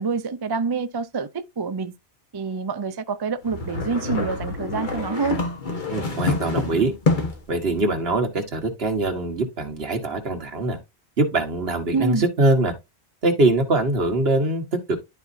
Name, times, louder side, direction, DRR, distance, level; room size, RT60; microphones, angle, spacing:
voice 1, 0.0-1.9 2.3-5.4 11.9-12.3, right 5 dB, 40° right, 0.3 m, -27 dB
sound 1, 3.4-7.5, left 3 dB, 45° left, 1.4 m, -26 dB
voice 2, 5.9-6.9 7.5-10.8 11.2-12.7 13.2-15.0, right 2 dB, 60° right, 1.6 m, -23 dB
12.0 x 4.0 x 2.6 m
omnidirectional pair, 1.2 m